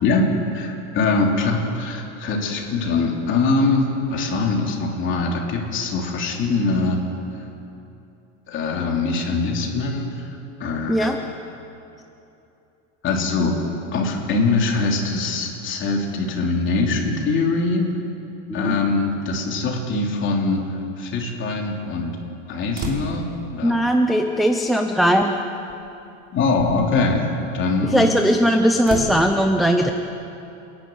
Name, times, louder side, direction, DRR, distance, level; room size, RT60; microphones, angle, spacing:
voice 1, 0.0-7.0 8.5-11.2 13.0-13.6 13.9-17.9 18.5-22.2 22.5-23.7 26.3-28.1, left 3 dB, 30° left, 0 dB, 3.1 m, -23 dB
sound 1, 22.7-23.4 24.6-24.7 25.7-25.9 26.4-27.0 28.8-29.2, right 1 dB, 25° right, 3.1 m, -31 dB
voice 2, 23.6-25.4 27.8-29.9, equal, ahead, 4 dB, 0.4 m, -19 dB
28.0 x 11.0 x 9.2 m, 2.8 s
supercardioid pair, 155°, 38 cm